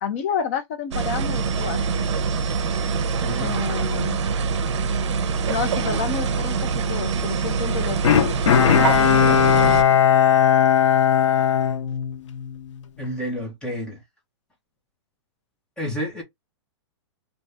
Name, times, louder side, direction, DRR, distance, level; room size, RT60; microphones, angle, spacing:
voice 1, 0.0-2.1 3.4-4.2 5.5-10.0, left 6 dB, 30° left, 0.4 m, -30 dB
sound 1, 0.9-9.8, right 5 dB, 75° right, 0.6 m, -24 dB
voice 2, 3.2-3.5 13.0-14.0 15.8-16.2, equal, 5° left, 0.8 m, -30 dB
Bowed string instrument, 8.0-12.5 13.0-13.1, left 8 dB, 85° left, 0.7 m, -18 dB
2.7 x 2.6 x 3.2 m
hypercardioid pair, 165°, 15 cm